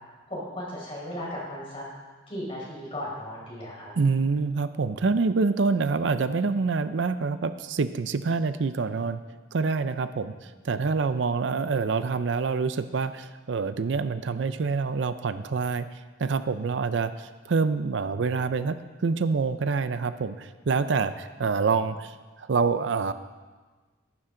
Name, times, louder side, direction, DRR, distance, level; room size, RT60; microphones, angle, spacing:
voice 1, 0.3-1.8 2.3-3.9 10.0-10.1, left 1 dB, 30° left, -5 dB, 4.9 m, -36 dB
voice 2, 4.0-9.2 9.5-15.9 16.2-23.1, right 4 dB, 70° right, 12 dB, 0.5 m, -26 dB
14.5 x 12.0 x 3.8 m, 1.3 s
head